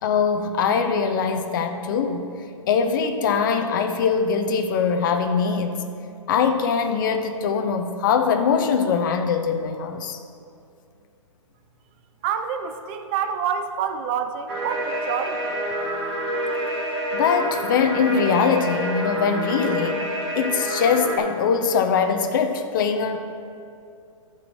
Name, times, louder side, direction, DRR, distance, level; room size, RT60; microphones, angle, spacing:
voice 1, 0.0-2.3 2.7-5.8 6.3-10.2 17.1-20.1 20.4-23.2, left 6 dB, 40° left, 6 dB, 0.7 m, -22 dB
voice 2, 12.2-15.6, right 7 dB, 20° right, 8 dB, 0.4 m, -27 dB
sound 1, 14.5-21.2, right 1 dB, 50° right, 1.7 m, -27 dB
13.5 x 4.8 x 4.3 m, 2.5 s
hypercardioid pair, 155°, 17 cm